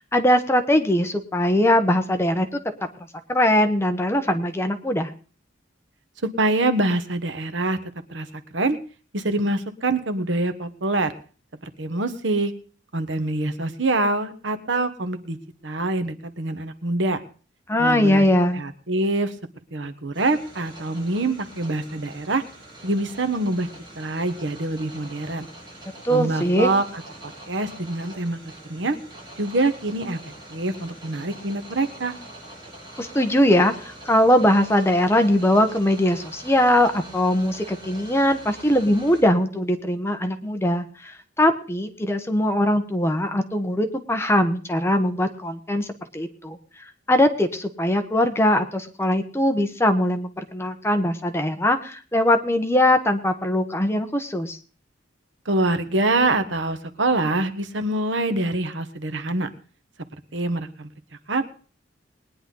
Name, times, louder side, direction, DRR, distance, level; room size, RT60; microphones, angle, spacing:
voice 1, 0.1-2.6 3.3-5.1 17.7-18.6 26.0-26.7 33.0-45.9 46.1-46.6 47.1-54.6, left 1 dB, 15° left, 7 dB, 1.2 m, -21 dB
voice 2, 6.2-7.8 8.1-8.3 8.5-8.8 9.1-11.1 11.6-12.5 12.9-15.4 15.6-17.2 17.8-18.2 18.5-19.3 19.7-22.4 22.8-23.7 23.9-25.5 26.1-28.4 28.7-29.0 29.4-32.1 55.4-59.5 60.3-60.9 61.3-61.5, right 2 dB, 70° right, 10 dB, 1.3 m, -25 dB
sound 1, 20.1-39.2, right 1 dB, 25° right, 7.0 m, -44 dB
20.5 x 10.0 x 3.9 m, 0.39 s
head